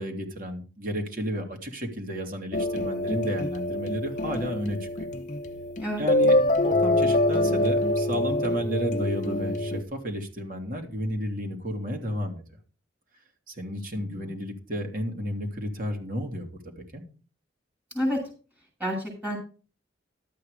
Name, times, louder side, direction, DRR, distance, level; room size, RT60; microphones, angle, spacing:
voice 1, 0.0-5.1 6.0-6.4 6.6-12.4 13.5-16.5 16.8-17.0, equal, 45° right, 3 dB, 2.7 m, -32 dB
sound 1, 2.5-9.8, left 1 dB, 40° left, 0.7 m, -25 dB
voice 2, 13.9-14.3 17.9-18.2 18.8-19.4, equal, 10° right, 1 dB, 7.3 m, -29 dB
12.5 x 8.6 x 5.0 m, 0.36 s
head